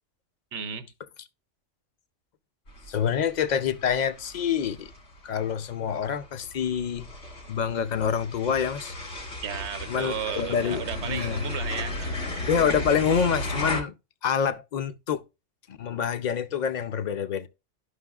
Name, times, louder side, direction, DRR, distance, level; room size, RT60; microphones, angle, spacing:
voice 1, 0.5-0.9 9.4-12.2, right 8 dB, 70° right, 0.9 m, -34 dB
sound 1, 2.7-13.8, left 2 dB, 75° left, 2.3 m, -35 dB
voice 2, 2.9-4.9 5.2-7.1 7.5-8.9 9.9-11.4 12.5-13.9 14.2-15.2 15.7-17.5, left 7 dB, 50° left, 0.5 m, -27 dB
11.5 x 6.0 x 2.3 m
omnidirectional pair, 1.3 m